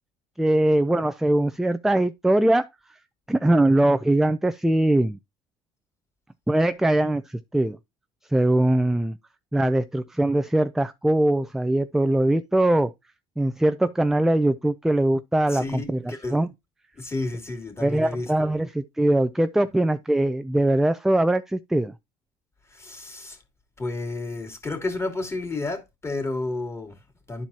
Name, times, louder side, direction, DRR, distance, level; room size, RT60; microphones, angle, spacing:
voice 1, 0.4-2.7 3.3-5.2 6.5-7.8 8.3-9.2 9.5-12.9 13.4-16.0 16.3-16.5 17.8-21.9, right 1 dB, 5° right, 0.4 m, -21 dB
voice 2, 15.5-16.4 16.9-18.5 22.7-23.4 23.8-27.4, left 2 dB, 15° left, 2.7 m, -31 dB
12.0 x 4.5 x 2.8 m
supercardioid pair, 105°, 15 cm